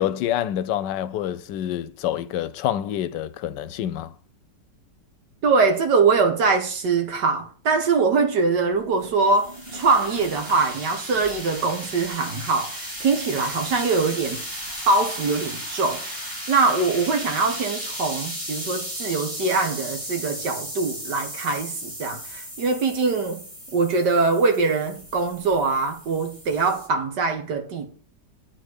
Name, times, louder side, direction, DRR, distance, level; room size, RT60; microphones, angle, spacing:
voice 1, 0.0-4.1, left 11 dB, 80° left, 1.2 m, -27 dB
voice 2, 5.4-14.4 14.9-23.4 23.7-27.9, right 4 dB, 70° right, 1.9 m, -23 dB
sound 1, 8.7-26.9, equal, 15° right, 2.6 m, -35 dB
9.1 x 4.3 x 6.4 m
omnidirectional pair, 1.9 m